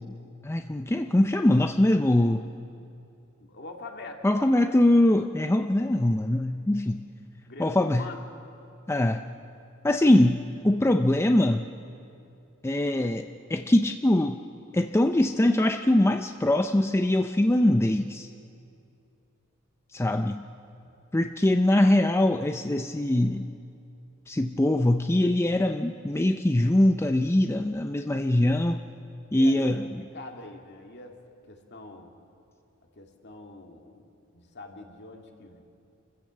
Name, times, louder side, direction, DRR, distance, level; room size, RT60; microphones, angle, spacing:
voice 1, 0.4-2.5 4.2-7.0 7.6-8.1 8.9-9.2 9.8-11.7 12.6-14.4 14.7-18.3 19.9-20.4 21.1-23.5 24.3-28.8 29.3-30.0, left 1 dB, 10° left, 7 dB, 0.5 m, -22 dB
voice 2, 3.5-4.8 7.5-8.2 20.8-20.9 29.3-31.2 31.5-32.1 32.9-34.1 34.3-35.6, left 2 dB, 55° left, 2 dB, 2.3 m, -44 dB
28.0 x 15.0 x 7.5 m, 2.6 s
head